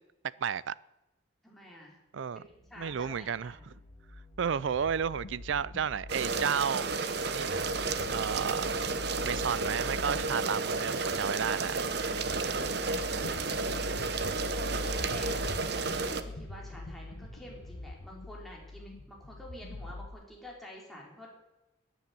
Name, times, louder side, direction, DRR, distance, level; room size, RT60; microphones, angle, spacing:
voice 1, 0.4-0.7 2.1-2.4 2.8-3.5 4.4-6.9 7.2-7.7 8.1-8.8 9.2-11.8, right 7 dB, 70° right, 0.4 m, -32 dB
voice 2, 1.4-2.0 2.5-3.6 10.4-11.1 12.8-21.3, equal, ahead, 3.7 m, -49 dB
sound 1, 2.5-17.9, equal, 25° left, 2.4 m, -56 dB
sound 2, 3.5-20.1, left 2 dB, 70° left, 1.1 m, -43 dB
sound 3, 6.1-16.2, right 4 dB, 55° right, 0.9 m, -32 dB
11.5 x 10.0 x 9.3 m
head